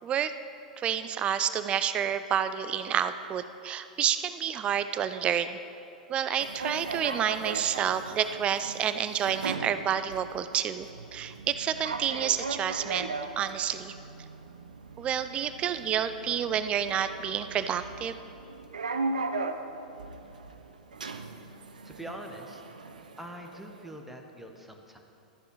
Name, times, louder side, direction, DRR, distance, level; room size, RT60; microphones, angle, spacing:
voice 1, 0.0-0.3 0.8-5.6 6.1-13.9 15.0-18.2, right 9 dB, 25° right, 12 dB, 0.4 m, -29 dB
sound 1, 6.4-23.9, right 3 dB, 75° right, 0.7 m, -38 dB
voice 2, 21.8-22.6 23.2-25.0, right 1 dB, 5° right, 3 dB, 1.2 m, -43 dB
13.5 x 9.1 x 4.8 m, 2.8 s
figure-of-eight pair, 95°, 4 cm